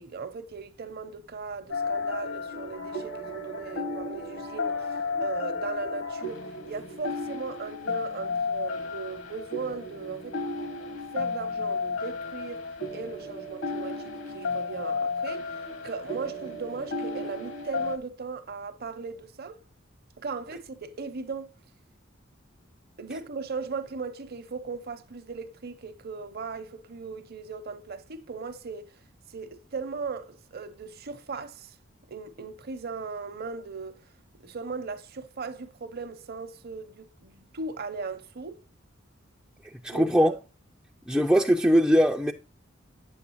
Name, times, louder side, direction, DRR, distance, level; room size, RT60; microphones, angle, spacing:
voice 1, 0.0-10.4 11.1-12.6 12.9-15.6 15.8-19.6 20.2-21.5 23.0-28.9 29.3-31.8 32.1-34.0 34.4-38.6 39.9-40.4, right 4 dB, 50° right, 0.7 m, -38 dB
sound 1, 1.7-18.0, left 3 dB, 65° left, 1.2 m, -33 dB
voice 2, 39.8-40.3 41.1-42.3, equal, 5° right, 0.4 m, -21 dB
8.7 x 7.2 x 2.9 m
head